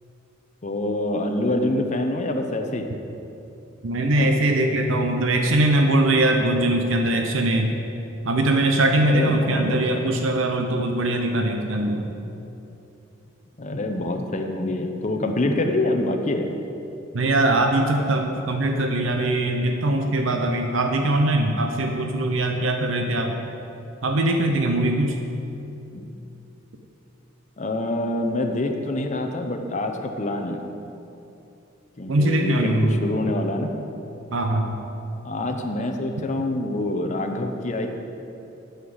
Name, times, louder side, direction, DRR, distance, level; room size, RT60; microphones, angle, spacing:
voice 1, 0.6-2.9 9.0-10.1 13.6-16.5 25.9-26.0 27.6-30.6 32.0-33.7 35.2-37.9, left 1 dB, 35° left, 4 dB, 0.7 m, -26 dB
voice 2, 3.8-7.7 8.2-12.1 17.1-23.3 24.0-25.2 32.1-33.0 34.3-34.8, right 1 dB, 70° right, 3 dB, 0.7 m, -21 dB
9.1 x 5.7 x 7.8 m, 2.9 s
head